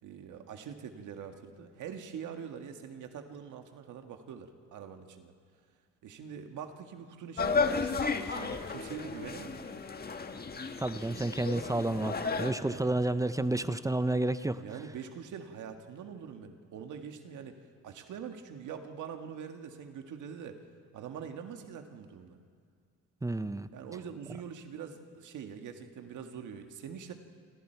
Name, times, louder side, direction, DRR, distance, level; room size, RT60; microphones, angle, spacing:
voice 1, 0.0-5.3 6.0-9.7 11.4-11.7 12.4-12.9 14.6-17.5 17.8-20.6 20.9-22.4 23.7-27.1, right 7 dB, 80° right, 5 dB, 1.8 m, -44 dB
sound 1, 7.4-12.5, left 4 dB, 30° left, 1.5 m, -33 dB
voice 2, 10.8-14.6 23.2-23.7, right 2 dB, 10° right, 12 dB, 0.7 m, -30 dB
28.5 x 25.5 x 4.6 m, 2.1 s
cardioid pair, 90°, 30 cm